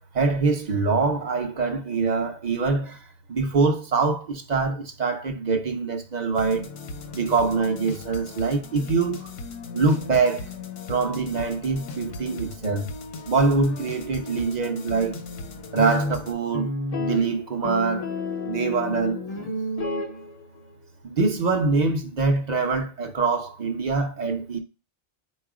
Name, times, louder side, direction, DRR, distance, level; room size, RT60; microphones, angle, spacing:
voice 1, 0.1-3.0 3.3-6.7 7.1-9.3 9.7-10.5 10.9-12.9 13.2-15.2 15.7-16.7 17.0-18.1 18.5-19.5 21.0-24.6, right 4 dB, 45° right, 0.7 m, -24 dB
sound 1, 6.3-16.3, left 3 dB, 70° left, 0.9 m, -38 dB
sound 2, 15.7-20.6, left 2 dB, 45° left, 0.6 m, -30 dB
4.5 x 2.4 x 4.7 m
omnidirectional pair, 1.1 m